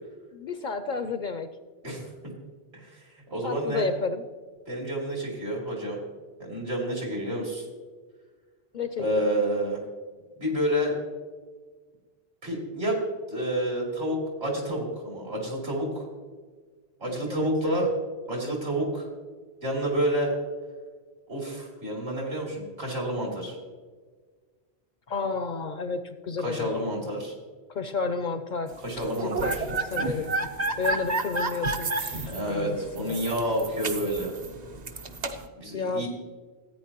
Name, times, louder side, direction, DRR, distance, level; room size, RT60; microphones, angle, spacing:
voice 1, 0.3-1.5 3.4-4.2 8.7-9.4 17.1-17.8 25.1-27.2 27.7-28.8 29.2-30.4 30.8-33.2 35.7-36.1, left 4 dB, 60° left, 10 dB, 0.6 m, -32 dB
voice 2, 1.8-2.3 2.7-3.8 4.7-6.0 6.4-7.7 9.0-9.8 10.4-10.9 12.4-13.0 13.3-16.1 17.0-17.9 18.3-19.1 19.6-20.3 21.3-23.6 26.4-27.3 28.8-29.6 29.9-30.2 32.2-34.3 35.6-36.1, right 1 dB, 70° right, -1 dB, 3.2 m, -29 dB
sound 1, 29.0-35.5, right 2 dB, 45° right, 0.8 m, -31 dB
14.5 x 9.1 x 2.9 m, 1.5 s
omnidirectional pair, 1.1 m